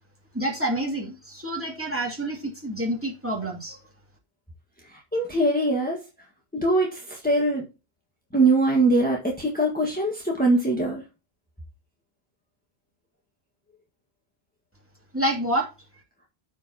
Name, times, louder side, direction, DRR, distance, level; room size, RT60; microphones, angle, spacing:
voice 1, 0.3-3.8 15.1-15.7, right 1 dB, 10° right, 2.7 m, -28 dB
voice 2, 4.9-6.0 6.5-7.7 8.3-11.0, right 2 dB, 10° left, 1.6 m, -22 dB
14.5 x 4.9 x 2.9 m
omnidirectional pair, 1.1 m